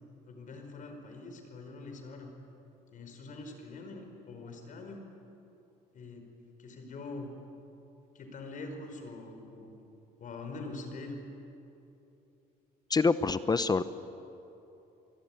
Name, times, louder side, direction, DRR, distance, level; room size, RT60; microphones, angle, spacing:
voice 1, 0.3-2.3 2.9-5.0 5.9-6.2 6.6-7.3 8.1-9.7 10.2-11.2, left 3 dB, 50° left, 4 dB, 5.2 m, -44 dB
voice 2, 12.9-13.8, left 4 dB, 25° left, 14 dB, 0.8 m, -26 dB
27.0 x 21.5 x 9.2 m, 3.0 s
cardioid pair, 110°, 17 cm